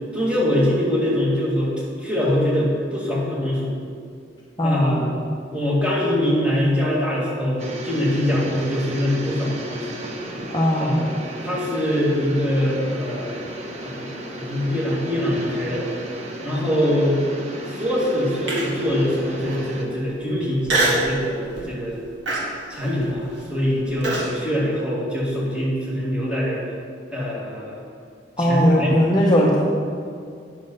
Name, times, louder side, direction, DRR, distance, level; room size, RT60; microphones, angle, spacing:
voice 1, 0.1-1.7 2.0-3.7 4.6-5.1 5.5-9.9 10.8-13.4 13.8-15.9 16.4-17.2 17.7-22.0 22.7-26.6 27.1-27.8 28.4-28.9 29.3-29.5, equal, 5° right, -7 dB, 2.0 m, -23 dB
voice 2, 4.6-5.1 10.5-11.0 28.4-29.6, equal, 20° left, -4 dB, 0.8 m, -19 dB
sound 1, 7.6-19.9, right 1 dB, 35° right, 0.9 m, -34 dB
Human voice, 18.5-18.9 19.5-19.6 20.7-21.1 21.6-21.8 22.3-24.3, right 2 dB, 70° right, 1.7 m, -24 dB
8.6 x 6.6 x 5.4 m, 2.3 s
head